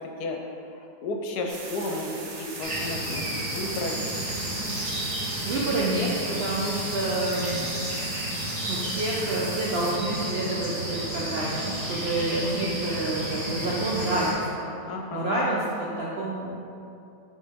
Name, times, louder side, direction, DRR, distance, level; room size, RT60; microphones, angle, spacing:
voice 1, 0.2-4.1 14.9-15.6, left 2 dB, 70° left, 2 dB, 1.1 m, -33 dB
sound 1, 1.5-9.9, right 3 dB, 50° right, 0.9 m, -40 dB
sound 2, 2.6-14.3, right 1 dB, 25° right, 1.1 m, -32 dB
voice 2, 5.1-7.9 8.7-14.7 15.1-16.6, right 2 dB, 80° right, -5 dB, 0.5 m, -28 dB
7.4 x 3.9 x 3.5 m, 2.7 s
omnidirectional pair, 1.9 m